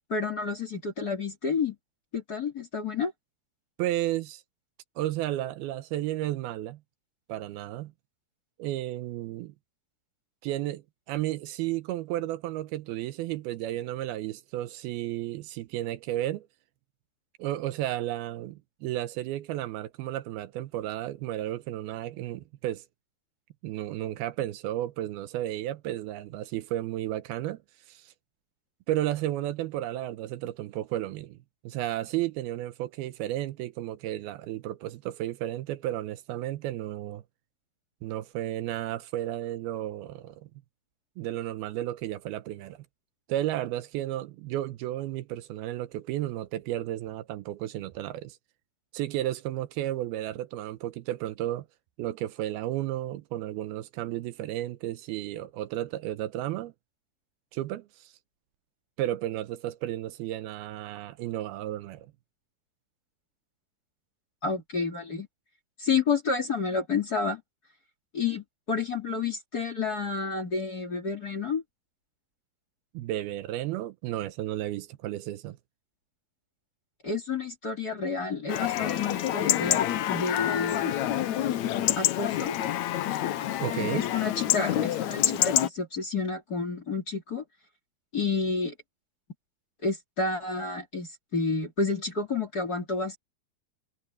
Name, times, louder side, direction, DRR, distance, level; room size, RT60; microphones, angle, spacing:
voice 1, 0.1-1.8 2.1-3.1 64.4-65.3 65.8-67.4 68.1-71.6 77.0-80.9 82.0-82.6 83.8-87.4 88.1-88.7 89.8-93.2, left 4 dB, 30° left, 2.6 m, -30 dB
voice 2, 3.8-4.4 5.0-6.8 7.3-7.9 8.6-9.5 10.4-10.8 11.1-16.5 17.4-22.9 23.6-27.6 27.9-28.1 28.9-31.4 31.6-37.2 38.0-40.5 41.2-42.9 43.3-48.4 48.9-51.7 52.0-56.7 57.5-58.1 59.0-62.1 72.9-75.6 83.6-84.1, right 14 dB, 80° right, 2.6 m, -33 dB
Chatter / Livestock farm animals working animals / Chirp tweet, 78.5-85.7, left 12 dB, 80° left, 1.6 m, -27 dB
omnidirectional pair, 4.6 m